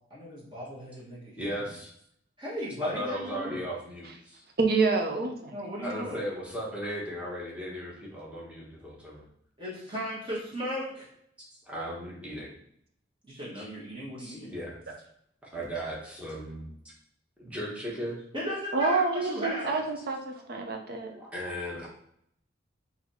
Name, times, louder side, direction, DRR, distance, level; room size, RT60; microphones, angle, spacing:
voice 1, 0.1-1.7 2.4-3.6 5.5-6.2 9.6-11.1 13.2-14.5 18.3-19.8, equal, 25° right, -6 dB, 1.3 m, -36 dB
voice 2, 1.4-1.9 2.8-4.4 5.8-9.3 11.7-12.5 13.5-13.6 14.2-14.8 15.5-16.9 17.4-18.2 19.2-19.3 20.3-20.5 21.1-21.9, equal, 5° right, -5 dB, 1.2 m, -37 dB
voice 3, 4.6-5.6 18.7-21.1, right 3 dB, 60° right, 4 dB, 0.7 m, -27 dB
4.0 x 2.9 x 4.3 m, 0.71 s
head